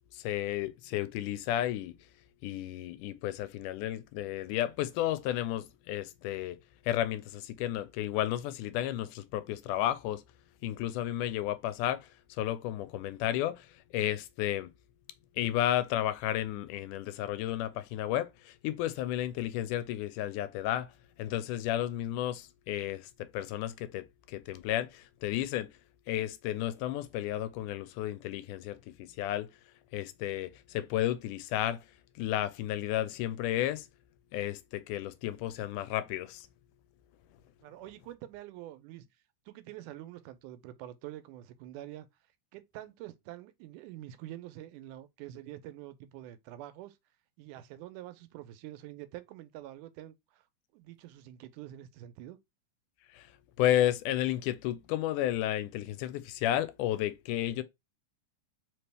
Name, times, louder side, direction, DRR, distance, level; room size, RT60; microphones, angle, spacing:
voice 1, 0.1-1.9 2.4-6.6 6.9-10.2 10.6-12.1 12.4-13.6 13.9-14.7 15.4-20.9 21.2-23.1 23.3-25.7 26.1-29.5 29.9-31.8 32.2-33.9 34.3-36.5 53.2-53.3 53.6-57.6, left 13 dB, 90° left, 2.1 m, -32 dB
voice 2, 37.6-39.1 39.5-42.1 42.5-47.0 47.4-50.4 50.7-52.4, right 14 dB, 85° right, 2.1 m, -46 dB
4.8 x 3.0 x 3.3 m
omnidirectional pair, 3.6 m